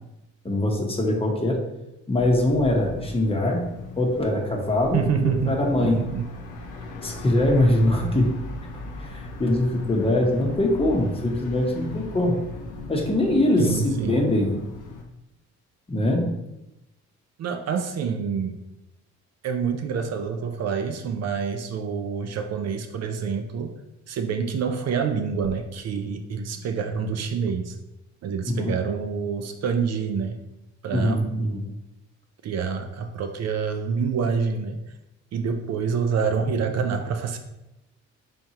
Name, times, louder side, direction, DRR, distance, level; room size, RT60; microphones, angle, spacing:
voice 1, 0.4-1.6 2.1-3.6 4.0-6.1 7.0-8.4 9.0-12.4 12.9-14.5 15.9-16.3 28.5-28.7 30.9-31.6, left 1 dB, 20° left, 0 dB, 0.9 m, -22 dB
sound 1, 2.1-15.0, left 2 dB, 85° left, 0.7 m, -38 dB
voice 2, 4.9-6.3 13.6-14.3 17.4-18.5 19.4-23.8 24.1-27.8 28.2-30.4 30.8-31.2 32.4-34.8 35.3-37.4, right 6 dB, 60° right, 6 dB, 0.5 m, -27 dB
4.3 x 3.6 x 2.8 m, 0.92 s
cardioid pair, 90°, 30 cm